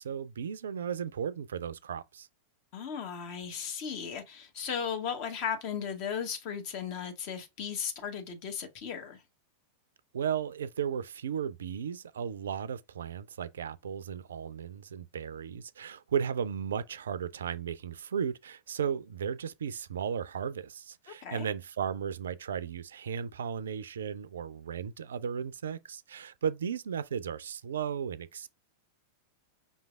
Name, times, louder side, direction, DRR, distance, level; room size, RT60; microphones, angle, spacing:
voice 1, 0.0-2.3 10.1-28.5, right 7 dB, 65° right, 0.3 m, -35 dB
voice 2, 2.7-9.2 21.1-21.5, left 7 dB, 45° left, 1.0 m, -36 dB
5.4 x 3.2 x 2.3 m
figure-of-eight pair, 90°, 0 cm